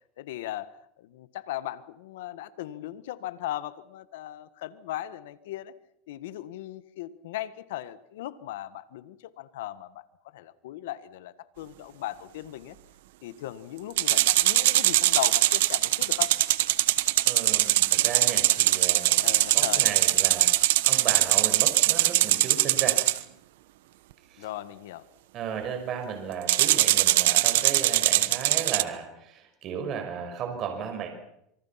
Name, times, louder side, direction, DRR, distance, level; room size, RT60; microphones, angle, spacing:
voice 1, 0.2-5.7 6.1-10.0 10.3-12.8 13.2-16.3 19.2-19.9 24.4-25.0, left 14 dB, 85° left, 14 dB, 1.6 m, -37 dB
sound 1, 14.0-23.2 26.5-28.8, right 16 dB, 80° right, 1.1 m, -22 dB
voice 2, 17.2-19.3 19.5-20.5 20.8-23.0 25.3-31.1, right 7 dB, 40° right, 5 dB, 5.8 m, -35 dB
26.0 x 25.0 x 5.9 m, 0.78 s
supercardioid pair, 135°, 0 cm